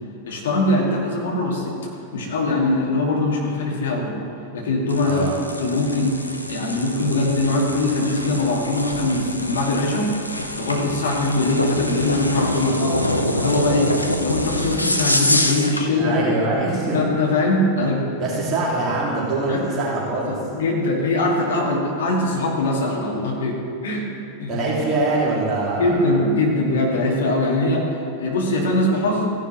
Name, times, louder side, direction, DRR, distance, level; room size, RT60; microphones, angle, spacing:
voice 1, 0.3-1.8 2.1-4.2 4.5-6.2 6.5-10.1 10.6-13.0 13.3-16.6 16.9-18.1 19.5-19.7 20.3-24.1 24.4-24.6 25.8-29.2, left 2 dB, 60° left, -2 dB, 2.3 m, -22 dB
sound 1, 4.9-15.9, left 1 dB, 85° left, 0.7 m, -26 dB
voice 2, 5.0-5.3 15.9-17.2 18.2-20.3 24.5-26.1, right 2 dB, 30° right, -6 dB, 2.5 m, -23 dB
15.5 x 10.0 x 3.1 m, 2.9 s
figure-of-eight pair, 90°, 0 cm